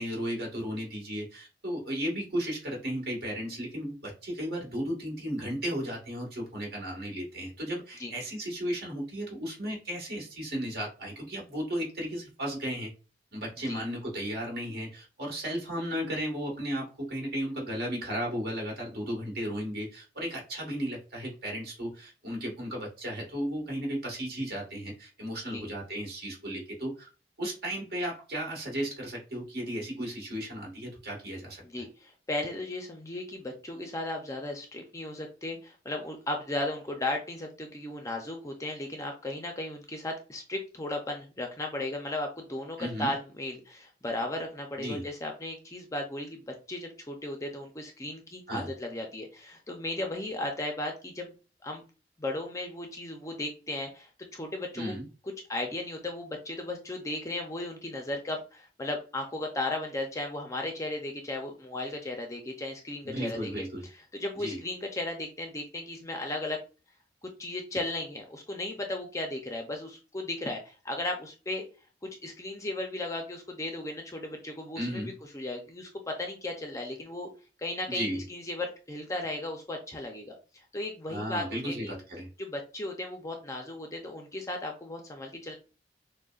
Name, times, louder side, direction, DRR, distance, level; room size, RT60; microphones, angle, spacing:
voice 1, 0.0-12.9 13.3-27.1 27.4-31.6 42.8-43.1 44.8-45.0 48.5-48.7 54.7-55.1 63.0-63.9 64.4-64.6 74.7-75.1 77.9-78.2 81.1-82.3, equal, 55° right, -1 dB, 1.5 m, -34 dB
voice 2, 31.6-51.3 51.6-51.8 52.2-54.9 55.5-66.6 67.2-71.7 72.2-77.3 77.6-81.9 82.4-85.6, left 2 dB, 15° left, 3 dB, 0.5 m, -36 dB
6.3 x 2.1 x 2.4 m, 0.34 s
head